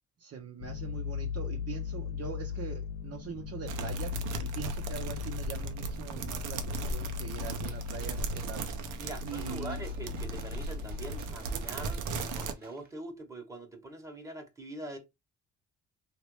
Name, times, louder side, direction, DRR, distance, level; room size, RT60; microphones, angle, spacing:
voice 1, 0.2-4.2 4.4-8.7 9.2-9.8, right 7 dB, 55° right, 0.7 m, -42 dB
sound 1, 0.6-11.4, left 7 dB, 70° left, 0.7 m, -38 dB
sound 2, 3.7-12.5, right 4 dB, 85° right, 0.6 m, -37 dB
Gunshot gunfire, 7.5-12.9, right 3 dB, 30° right, 1.3 m, -56 dB
voice 2, 9.0-15.0, right 2 dB, 10° right, 1.1 m, -43 dB
3.1 x 2.5 x 3.0 m
cardioid pair, 90°, 30 cm